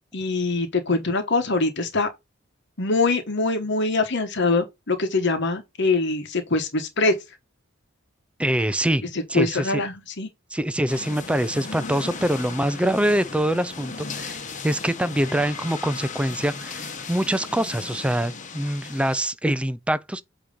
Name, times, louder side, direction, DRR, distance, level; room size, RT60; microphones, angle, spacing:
voice 1, 0.1-2.1 2.8-7.1 9.3-10.3, left 3 dB, 60° left, 1.1 m, -23 dB
voice 2, 8.4-9.0 9.3-9.8 10.5-20.2, right 1 dB, 5° right, 0.4 m, -24 dB
sound 1, 10.9-19.2, left 4 dB, 40° left, 1.1 m, -36 dB
8.5 x 3.0 x 5.2 m
head